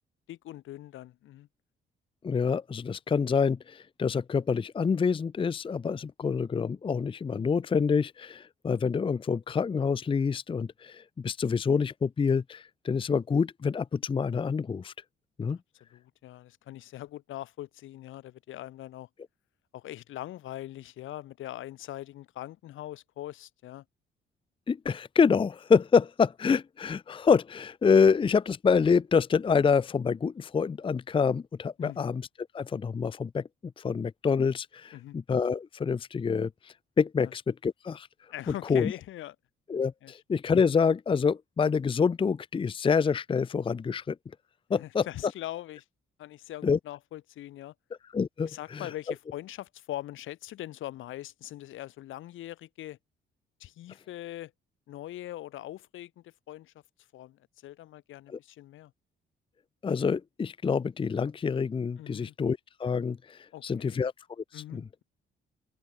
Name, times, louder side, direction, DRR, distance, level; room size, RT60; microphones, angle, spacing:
voice 1, 0.3-1.5 15.9-19.1 19.7-23.8 31.8-32.1 34.9-35.2 37.2-37.3 38.3-39.4 40.0-40.1 44.7-45.8 46.2-47.7 48.4-53.0 53.6-54.5 54.9-56.7 57.1-58.9 62.0-62.4 63.5-64.1 64.5-65.0, left 14 dB, 85° left, 4.0 m, -42 dB
voice 2, 2.2-14.9 15.4-15.6 24.7-32.2 32.5-33.5 33.8-38.1 38.5-38.9 39.7-44.2 44.7-45.1 46.6-46.8 48.1-48.9 58.3-58.4 59.8-64.8, left 5 dB, 25° left, 0.5 m, -27 dB
open air
cardioid pair, 90°, 20 cm